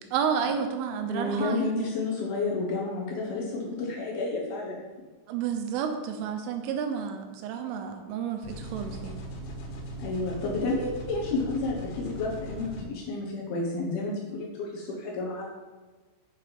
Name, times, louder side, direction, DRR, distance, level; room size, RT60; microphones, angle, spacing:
voice 1, 0.1-1.9 5.3-9.2, right 7 dB, 85° right, 6 dB, 3.4 m, -31 dB
voice 2, 1.1-4.8 10.0-15.5, left 3 dB, 70° left, -2 dB, 2.6 m, -31 dB
sound 1, 8.4-12.8, right 1 dB, 90° left, 4.2 m, -39 dB
7.7 x 6.5 x 5.4 m, 1.3 s
omnidirectional pair, 5.5 m